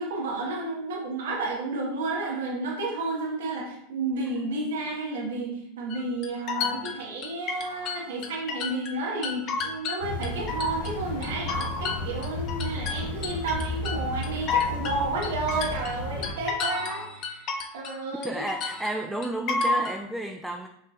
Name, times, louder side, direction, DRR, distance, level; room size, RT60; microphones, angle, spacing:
voice 1, 0.0-18.4, right 3 dB, 75° right, -2 dB, 1.2 m, -31 dB
sound 1, 5.9-9.0 9.2-10.9 11.2-18.0 18.2-20.0, left 4 dB, 45° left, 0.6 m, -31 dB
sound 2, 10.0-16.3, left 2 dB, 80° left, 0.8 m, -34 dB
voice 2, 18.2-20.7, right 1 dB, 5° right, 4 dB, 0.3 m, -32 dB
5.5 x 3.3 x 2.3 m, 0.79 s
hypercardioid pair, 95°, 0 cm